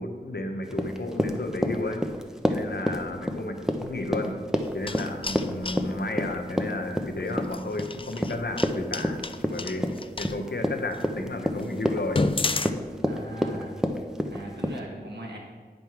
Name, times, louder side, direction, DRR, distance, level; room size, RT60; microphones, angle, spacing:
voice 1, 0.0-2.0 2.5-4.4 4.7-9.2 9.5-9.9 10.2-12.2, left 2 dB, 75° left, 4 dB, 0.9 m, -32 dB
Run, 0.7-14.8, equal, 5° right, 0.7 m, -28 dB
sound 1, 4.6-5.8 7.4-10.4 10.9-11.0 11.5-11.6 12.0-12.7, left 3 dB, 30° left, 0.3 m, -30 dB
voice 2, 13.0-13.8 14.3-15.4, right 1 dB, 85° right, -3 dB, 1.8 m, -39 dB
9.5 x 5.3 x 4.6 m, 1.5 s
wide cardioid pair, 40°, 17 cm